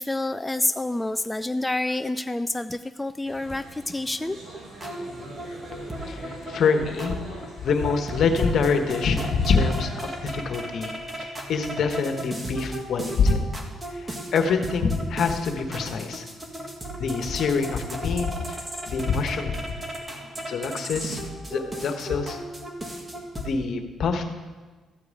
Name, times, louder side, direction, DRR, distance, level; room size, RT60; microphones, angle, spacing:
voice 1, 0.0-4.4, left 2 dB, 10° left, 10 dB, 0.3 m, -28 dB
sound 1, 3.2-10.2, right 1 dB, 55° right, 3.9 m, -43 dB
sound 2, 4.5-23.5, right 1 dB, 20° right, 1.8 m, -36 dB
voice 2, 5.7-13.4 13.9-16.3 17.0-18.6 18.9-19.7 20.1-21.2 21.5-22.4 23.4-24.2, left 5 dB, 65° left, 6 dB, 1.3 m, -25 dB
13.5 x 4.8 x 8.8 m, 1.3 s
cardioid pair, 90°, 0 cm